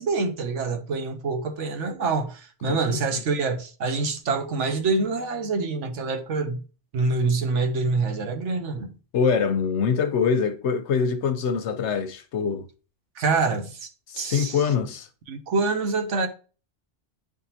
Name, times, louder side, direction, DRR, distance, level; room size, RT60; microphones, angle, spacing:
voice 1, 0.0-6.6 6.9-8.9 13.2-13.9 14.2-14.7 15.3-16.3, right 4 dB, 90° right, 1.3 m, -26 dB
voice 2, 2.7-3.0 9.1-12.6 14.1-15.1, left 6 dB, 75° left, 1.0 m, -24 dB
9.4 x 3.7 x 2.8 m
omnidirectional pair, 1.2 m